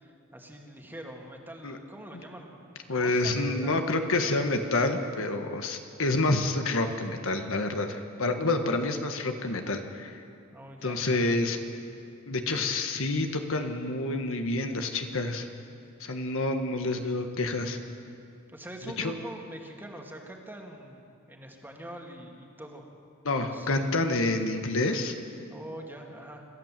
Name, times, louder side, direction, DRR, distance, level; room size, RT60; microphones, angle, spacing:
voice 1, 0.0-4.1 10.5-11.4 18.5-22.9 23.4-23.8 25.5-26.5, right 1 dB, 10° right, 1 dB, 2.2 m, -44 dB
voice 2, 2.9-10.2 10.8-11.6 12.3-15.5 16.0-17.8 19.0-19.1 23.2-25.1, left 2 dB, 65° left, 5 dB, 1.5 m, -28 dB
26.5 x 14.0 x 7.5 m, 2.4 s
head